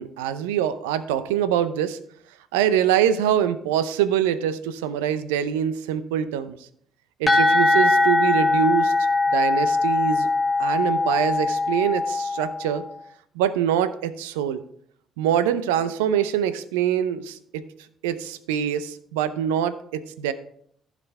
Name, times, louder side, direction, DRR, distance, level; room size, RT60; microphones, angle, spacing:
voice 1, 0.0-2.0 2.5-6.6 7.2-8.9 9.3-10.3 10.6-12.8 13.4-14.6 15.2-17.6 18.0-20.3, right 9 dB, 80° right, 13 dB, 0.6 m, -24 dB
sound 1, 7.3-12.9, left 2 dB, 15° left, 1.8 m, -21 dB
15.0 x 5.0 x 3.3 m, 0.64 s
hypercardioid pair, 55°, 0 cm